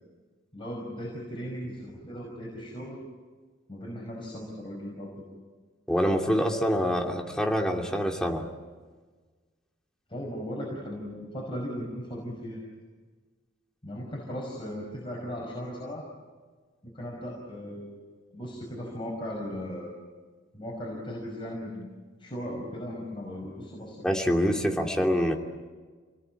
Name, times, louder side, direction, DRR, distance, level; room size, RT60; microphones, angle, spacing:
voice 1, 0.5-3.0 3.7-5.1 10.1-12.6 13.8-16.0 16.8-18.0 18.3-19.9 20.5-21.9 22.2-24.0, equal, 25° left, -2 dB, 5.5 m, -37 dB
voice 2, 5.9-8.5 24.0-25.3, equal, 5° left, 1 dB, 2.7 m, -25 dB
29.5 x 20.0 x 9.0 m, 1.4 s
head